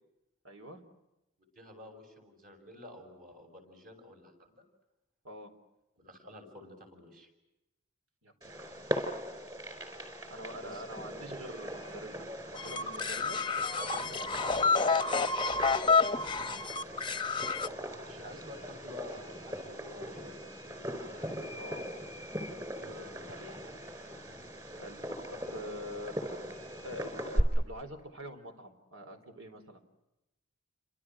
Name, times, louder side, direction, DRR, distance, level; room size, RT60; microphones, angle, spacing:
voice 1, 0.4-0.8 5.2-5.5 8.2-9.1 10.3-13.4 16.0-16.8 21.5-21.9 24.7-25.0 25.3-26.5 26.8-29.8, equal, 75° right, 7 dB, 4.2 m, -45 dB
voice 2, 1.5-4.5 6.0-7.3 10.3-11.2 13.8-15.0 17.9-20.9 21.1-21.4 22.8-23.9 24.1-24.5, left 1 dB, 45° right, 4 dB, 7.3 m, -50 dB
Fireworks, 8.4-27.4, equal, 20° right, 4.4 m, -40 dB
sound 1, 12.6-17.7, left 4 dB, 25° left, 0.9 m, -29 dB
30.0 x 26.5 x 6.4 m, 0.95 s
head